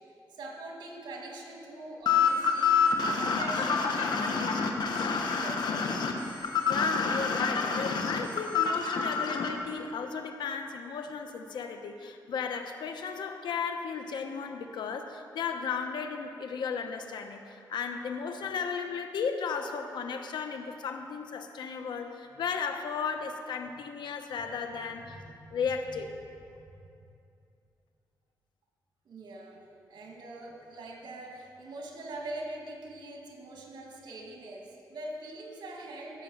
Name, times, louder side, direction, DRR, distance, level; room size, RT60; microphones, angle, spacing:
voice 1, 0.3-2.8 3.1-5.9 24.6-25.5 26.5-26.9 29.0-29.6 29.9-36.2, right 2 dB, 80° right, 0 dB, 2.4 m, -43 dB
sound 1, 2.1-9.5, left 5 dB, 70° left, 1.2 m, -27 dB
voice 2, 6.7-25.2 25.5-26.1, left 6 dB, 85° left, 6 dB, 1.0 m, -35 dB
16.0 x 6.7 x 7.3 m, 2.6 s
cardioid pair, 85°, 8 cm